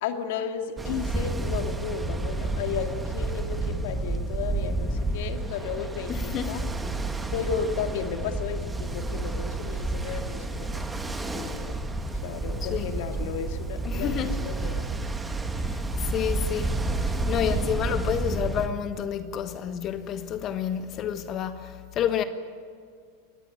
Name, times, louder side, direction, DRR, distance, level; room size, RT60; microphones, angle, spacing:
voice 1, 0.0-6.6 6.9-7.0 7.3-11.8 12.2-15.0, left 7 dB, 65° left, 2.2 m, -34 dB
Ocean, 0.8-18.7, right 2 dB, 10° right, 1.8 m, -30 dB
voice 2, 6.1-6.7 12.7-12.9 13.9-14.4 15.6-22.2, left 9 dB, 40° left, 1.4 m, -30 dB
22.5 x 18.5 x 9.4 m
hypercardioid pair, 95°, 0 cm